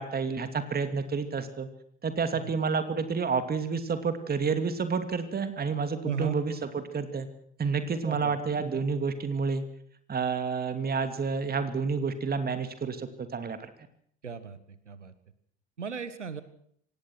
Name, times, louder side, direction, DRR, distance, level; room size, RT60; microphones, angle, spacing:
voice 1, 0.0-1.7 2.0-7.3 7.6-9.6 10.1-13.7, right 5 dB, 25° right, 9 dB, 2.8 m, -29 dB
voice 2, 6.0-6.4 8.0-8.3 14.2-15.1 15.8-16.4, right 5 dB, 85° right, 14 dB, 1.6 m, -36 dB
26.0 x 19.0 x 6.1 m, 0.65 s
figure-of-eight pair, 65°, 35 cm